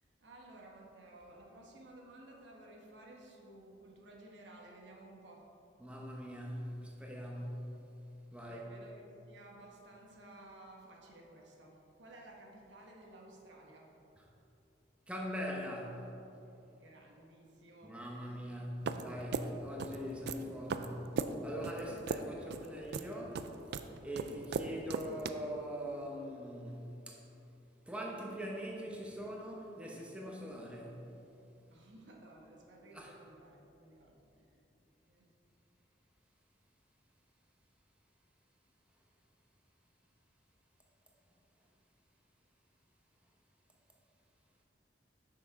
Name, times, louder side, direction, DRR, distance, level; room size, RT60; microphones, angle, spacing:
voice 1, 0.2-5.5 8.4-14.0 16.7-18.0 18.3-18.4 21.9-22.0 31.7-34.7 35.1-35.3, right 1 dB, 85° right, -1 dB, 1.1 m, -55 dB
voice 2, 5.8-7.8 8.3-8.7 15.1-16.1 17.8-27.2 27.8-31.1 32.9-33.1, equal, 5° right, -2 dB, 0.8 m, -42 dB
sound 1, 18.9-25.3, right 5 dB, 65° right, 0.3 m, -38 dB
6.3 x 5.9 x 4.6 m, 2.9 s
head